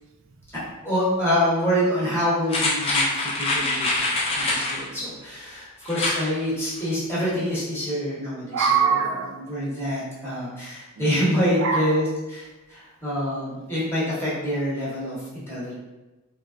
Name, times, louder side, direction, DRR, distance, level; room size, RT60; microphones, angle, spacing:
voice 1, 0.8-8.7 9.5-15.8, equal, 10° left, -10 dB, 0.8 m, -26 dB
sound 1, 2.5-4.8 5.8-6.2 6.6-6.7, left 2 dB, 25° left, 0.4 m, -24 dB
voice 2, 8.5-9.4 11.0-11.3 11.6-12.0, right 6 dB, 60° right, 4 dB, 0.3 m, -23 dB
3.0 x 2.2 x 2.4 m, 1.1 s
head